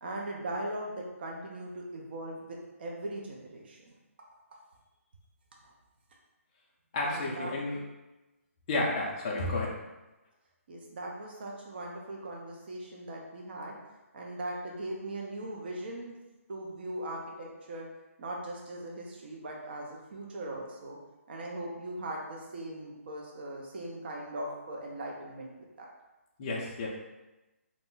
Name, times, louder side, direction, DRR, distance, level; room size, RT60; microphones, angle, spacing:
voice 1, 0.0-3.8 7.0-7.5 10.7-13.8 14.1-16.2 16.5-17.9 18.2-21.0 21.3-25.9, right 1 dB, 45° right, -2 dB, 0.5 m, -39 dB
voice 2, 6.9-7.8 8.7-9.7 26.4-26.9, left 2 dB, 25° left, -3 dB, 0.4 m, -31 dB
2.4 x 2.0 x 3.6 m, 1.0 s
hypercardioid pair, 165°, 8 cm